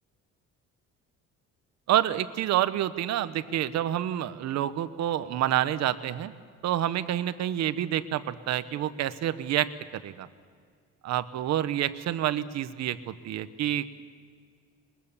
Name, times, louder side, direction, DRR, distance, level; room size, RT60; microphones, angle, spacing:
voice 1, 1.9-6.3 6.6-10.3 11.0-13.9, right 12 dB, 65° right, 13 dB, 1.0 m, -28 dB
21.5 x 21.5 x 7.2 m, 2.1 s
cardioid pair, 130°, 29 cm